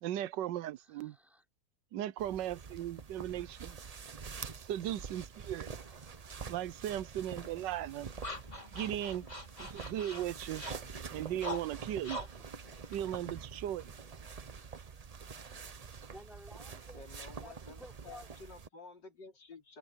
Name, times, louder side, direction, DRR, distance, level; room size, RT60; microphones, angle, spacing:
voice 1, 0.0-1.2 1.9-3.8 4.7-5.7 6.5-8.1 8.7-9.2 9.6-10.6 11.1-12.2 12.9-13.9, right 12 dB, 80° right, 1.3 m, -37 dB
voice 2, 0.9-1.4 3.4-4.3 5.5-6.1 7.8-8.3 10.3-10.7 14.2-14.7 16.1-17.0 17.4-18.3, equal, ahead, 5.0 m, -57 dB
sound 1, 2.2-18.7, right 5 dB, 50° right, 0.4 m, -47 dB
sound 2, 7.4-13.9, left 1 dB, 20° left, 4.2 m, -46 dB
voice 3, 16.7-19.8, left 4 dB, 80° left, 4.3 m, -52 dB
omnidirectional pair, 1.9 m